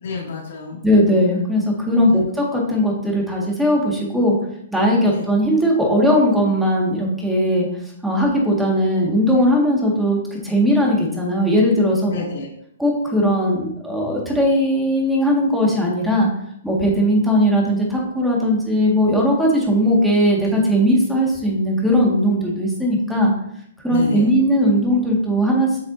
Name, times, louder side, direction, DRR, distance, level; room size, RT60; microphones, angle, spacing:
voice 1, 0.0-0.8 2.0-2.3 5.0-5.2 12.1-12.5 23.9-24.3, left 5 dB, 70° left, -6 dB, 2.3 m, -29 dB
voice 2, 0.8-4.4 4.7-7.7 8.0-12.2 12.8-16.3 16.6-23.3 23.8-25.8, equal, ahead, -2 dB, 1.8 m, -18 dB
8.1 x 6.0 x 2.7 m, 0.72 s
hypercardioid pair, 150°, 0 cm